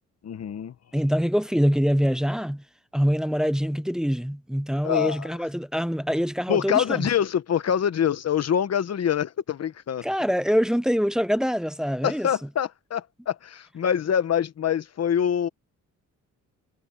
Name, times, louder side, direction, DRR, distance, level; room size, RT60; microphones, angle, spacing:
voice 1, 0.2-0.7 4.8-5.4 6.5-10.1 12.0-15.5, left 9 dB, 50° left, 1.2 m, -25 dB
voice 2, 0.9-2.6 2.9-7.0 10.0-12.3, equal, ahead, 0.7 m, -24 dB
cardioid pair, 95°, 32 cm